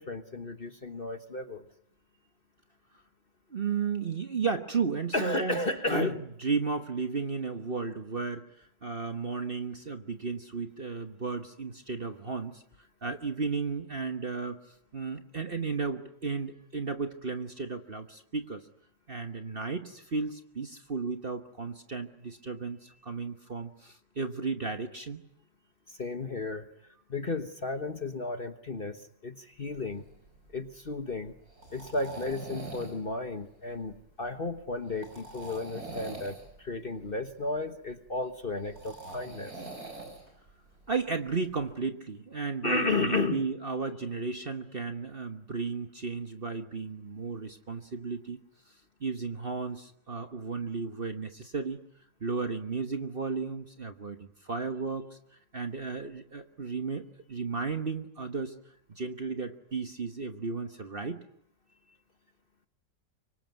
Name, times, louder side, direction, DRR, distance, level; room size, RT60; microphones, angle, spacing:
voice 1, 0.0-1.6 5.1-6.2 25.9-26.7 27.1-30.0 30.5-31.3 31.7-39.5 42.6-43.5, left 2 dB, 35° left, 8 dB, 1.3 m, -33 dB
voice 2, 3.5-5.6 5.9-12.6 13.0-14.6 14.9-18.6 19.1-25.2 40.9-48.4 49.0-51.8 52.2-58.5 58.9-61.2, right 4 dB, 35° right, 7 dB, 1.3 m, -34 dB
sound 1, 29.6-41.8, right 2 dB, 55° right, 6.9 m, -45 dB
24.5 x 24.5 x 9.4 m, 0.73 s
omnidirectional pair, 1.9 m